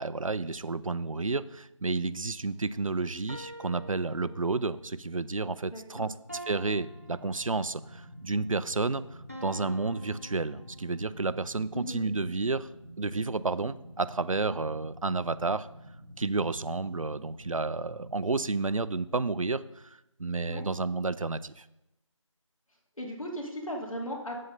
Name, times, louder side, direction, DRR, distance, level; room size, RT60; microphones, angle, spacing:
voice 1, 0.0-6.1 6.5-9.1 9.4-12.7 13.0-15.7 16.2-19.7 20.2-21.6, right 3 dB, 75° right, 16 dB, 0.5 m, -31 dB
sound 1, 3.3-4.9 6.3-8.0 9.3-11.2, right 1 dB, 25° right, 0.7 m, -46 dB
voice 2, 5.7-6.0 11.7-12.0 20.5-20.6 23.0-24.4, equal, 80° left, -1 dB, 3.1 m, -37 dB
sound 2, 6.8-18.5, equal, 5° right, 2.1 m, -49 dB
8.9 x 7.6 x 5.3 m, 0.90 s
figure-of-eight pair, 180°, 17 cm